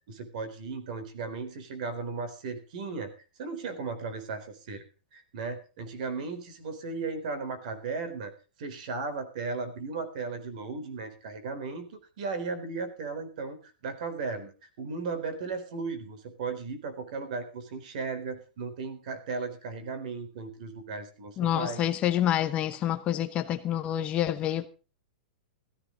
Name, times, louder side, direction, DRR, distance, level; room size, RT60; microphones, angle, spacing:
voice 1, 0.1-3.1 3.4-4.8 5.1-8.3 8.6-21.8, right 4 dB, 50° right, 4.1 m, -36 dB
voice 2, 21.4-24.7, left 11 dB, 25° left, 0.8 m, -27 dB
15.5 x 15.0 x 3.9 m
supercardioid pair, 160°, 5 cm